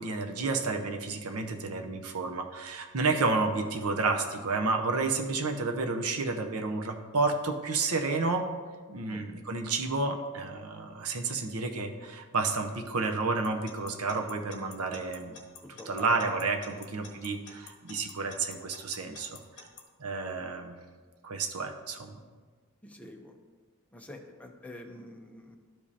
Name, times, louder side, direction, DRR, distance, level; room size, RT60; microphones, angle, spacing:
voice 1, 0.0-8.5 8.9-15.3 15.9-19.4 20.0-20.8 21.2-22.2, right 3 dB, 75° right, 4 dB, 0.8 m, -30 dB
Alarm / Clock, 13.4-19.8, left 5 dB, 55° left, 1.0 m, -48 dB
voice 2, 15.6-16.1 16.7-16.9 22.8-23.4 23.9-25.6, left 1 dB, 5° left, 2 dB, 0.7 m, -47 dB
12.0 x 5.1 x 2.8 m, 1.5 s
head